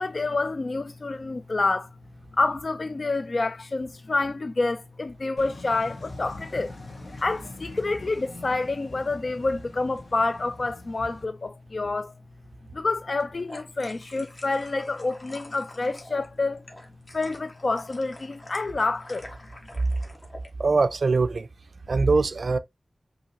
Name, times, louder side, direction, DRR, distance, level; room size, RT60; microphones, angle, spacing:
voice 1, 0.0-1.9 2.4-6.7 7.2-12.1 12.7-16.6 17.1-19.3, left 3 dB, 60° left, 0.4 m, -28 dB
sound 1, 5.4-11.2, left 2 dB, 80° left, 1.2 m, -43 dB
sound 2, 13.1-20.5, left 1 dB, 40° left, 1.4 m, -47 dB
voice 2, 20.6-21.5 21.9-22.6, right 4 dB, 80° right, 0.3 m, -22 dB
5.5 x 2.8 x 2.7 m
wide cardioid pair, 75°, 0 cm